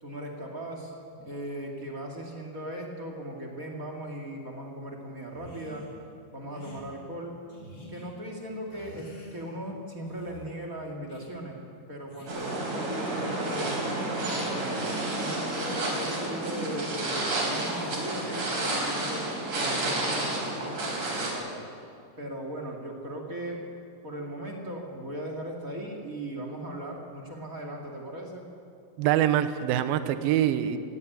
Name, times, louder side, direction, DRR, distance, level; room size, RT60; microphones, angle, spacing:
voice 1, 0.0-5.9 6.3-7.3 7.9-11.6 11.9-13.8 14.9-19.3 19.5-21.5 22.2-23.6 24.0-28.5, right 1 dB, 25° right, 0 dB, 2.1 m, -38 dB
sound 1, 5.3-6.0 6.5-6.8 7.5-8.1 8.7-9.7 10.0-10.5 11.1-11.4 12.1-12.7, left 1 dB, 30° left, 4.3 m, -48 dB
sound 2, 12.3-21.3, right 2 dB, 55° right, 5.8 m, -30 dB
voice 2, 29.0-30.8, right 11 dB, 80° right, 11 dB, 2.7 m, -24 dB
18.5 x 16.0 x 9.3 m, 2.4 s
omnidirectional pair, 4.3 m